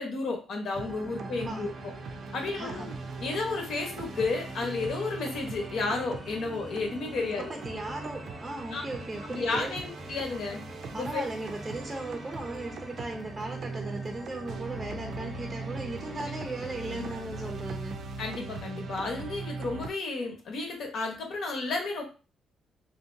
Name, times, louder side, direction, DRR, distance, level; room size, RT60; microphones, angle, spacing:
voice 1, 0.0-1.9 2.3-2.9 3.2-7.5 8.7-8.8 9.3-10.6 10.9-11.2 16.9-17.1 18.2-22.0, left 3 dB, 70° left, 2 dB, 1.1 m, -32 dB
sound 1, 0.7-17.5, left 1 dB, 5° left, 0.9 m, -46 dB
sound 2, 0.7-19.9, right 4 dB, 65° right, 0.5 m, -40 dB
voice 2, 2.5-2.9 7.4-9.8 10.9-18.0, right 2 dB, 20° right, 2 dB, 0.6 m, -37 dB
3.3 x 2.7 x 2.6 m, 0.33 s
cardioid pair, 90°, 0 cm